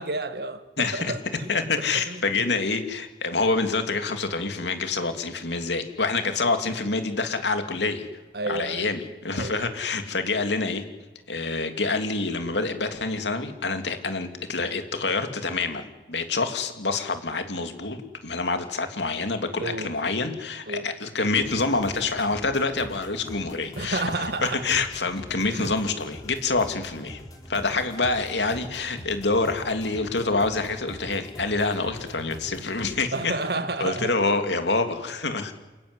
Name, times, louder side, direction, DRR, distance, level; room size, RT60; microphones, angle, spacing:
voice 1, 0.0-2.5 8.3-8.9 9.3-9.6 19.6-19.9 20.7-20.9 23.8-24.6 25.5-25.8 27.6-27.8 33.1-34.1, right 2 dB, 65° right, 1.7 m, -31 dB
voice 2, 0.8-1.1 1.5-8.1 8.5-10.8 11.3-24.0 24.4-27.2 27.5-33.3 33.8-35.5, left 3 dB, 90° left, 2.9 m, -27 dB
sound 1, 21.4-33.0, equal, 20° left, 4.4 m, -44 dB
29.0 x 15.0 x 9.9 m
head